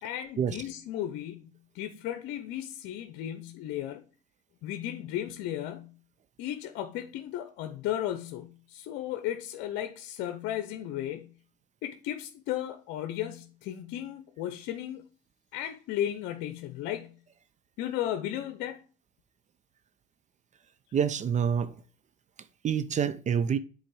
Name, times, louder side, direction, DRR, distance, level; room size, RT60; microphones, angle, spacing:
voice 1, 0.0-4.0 4.6-6.0 6.4-11.3 11.8-15.1 15.5-17.2 17.8-18.8, left 12 dB, 70° left, 0.7 m, -35 dB
voice 2, 20.9-21.8 22.6-23.6, right 7 dB, 35° right, 0.6 m, -27 dB
7.8 x 4.1 x 4.7 m
supercardioid pair, 90°, 20 cm